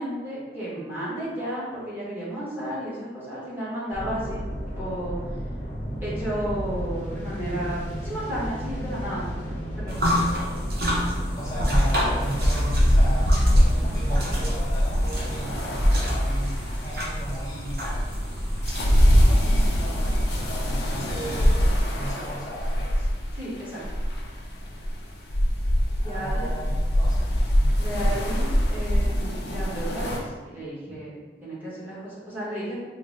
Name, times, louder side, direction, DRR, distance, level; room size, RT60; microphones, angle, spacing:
voice 1, 0.0-4.4 4.8-5.2 6.0-9.2 9.8-9.9 23.4-23.8 26.0-26.5 27.8-31.1 31.4-32.8, right 1 dB, 10° right, -10 dB, 1.2 m, -33 dB
sound 1, 3.9-14.5, equal, 45° left, 0.9 m, -33 dB
sound 2, 9.9-21.6, equal, 60° right, 0.8 m, -26 dB
voice 2, 11.4-17.9 18.8-21.7 21.9-22.9 26.0-27.3 27.6-27.9, equal, 20° left, -8 dB, 0.7 m, -37 dB
sound 3, 12.2-30.2, equal, 75° left, 0.6 m, -24 dB
3.8 x 2.2 x 3.7 m, 1.3 s
head